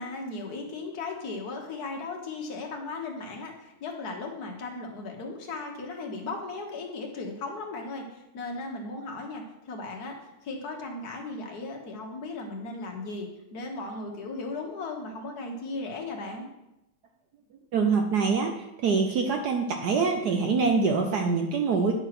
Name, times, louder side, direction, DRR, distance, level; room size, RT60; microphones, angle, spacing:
voice 1, 0.0-16.5, left 3 dB, 50° left, 1 dB, 1.8 m, -36 dB
voice 2, 17.7-21.9, right 5 dB, 65° right, 4 dB, 1.1 m, -25 dB
10.0 x 4.6 x 6.0 m, 0.91 s
omnidirectional pair, 2.2 m